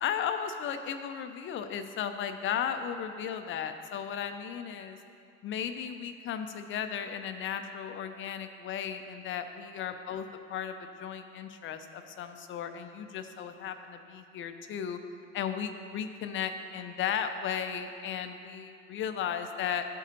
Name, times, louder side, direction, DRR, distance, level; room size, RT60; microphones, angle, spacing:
voice 1, 0.0-5.0 5.4-15.0 15.3-19.9, left 8 dB, 30° left, 8 dB, 0.6 m, -35 dB
14.0 x 4.9 x 2.7 m, 2.6 s
figure-of-eight pair, 60°, 38 cm